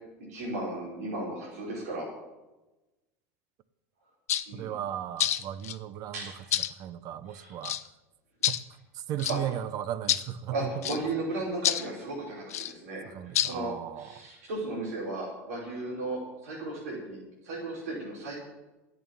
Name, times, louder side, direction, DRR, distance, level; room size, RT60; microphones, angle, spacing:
voice 1, 0.2-2.1 4.5-4.7 6.1-6.5 7.3-7.6 9.3-9.4 10.5-17.2 17.4-18.3, right 2 dB, 80° right, 5.2 m, -35 dB
sound 1, 4.3-4.5 5.2-5.8 6.5-6.7 7.6-7.9 8.4-8.6 9.2-9.4 10.1-10.3 10.8-11.0 11.6-11.9 12.5-12.7 13.4-13.5, left 12 dB, 85° left, 0.7 m, -27 dB
voice 2, 4.5-6.3 6.7-7.8 8.5-8.7 8.9-10.7 11.0-11.1 13.1-14.3, right 11 dB, 50° right, 0.9 m, -36 dB
11.0 x 8.6 x 9.1 m
hypercardioid pair, 90°, 8 cm